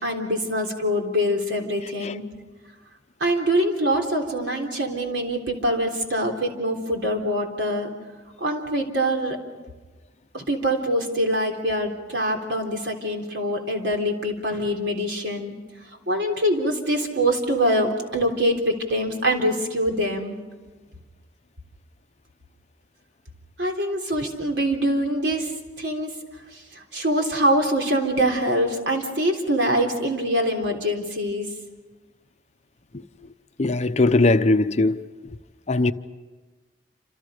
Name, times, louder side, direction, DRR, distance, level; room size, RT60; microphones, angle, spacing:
voice 1, 0.0-2.2 3.2-7.9 8.4-9.4 10.3-15.6 16.1-20.4 23.6-25.5 25.8-26.2 26.5-31.5, equal, 85° right, 3.6 m, -24 dB
voice 2, 33.6-35.0 35.7-35.9, left 2 dB, 40° left, 0.7 m, -19 dB
28.0 x 27.5 x 5.1 m
head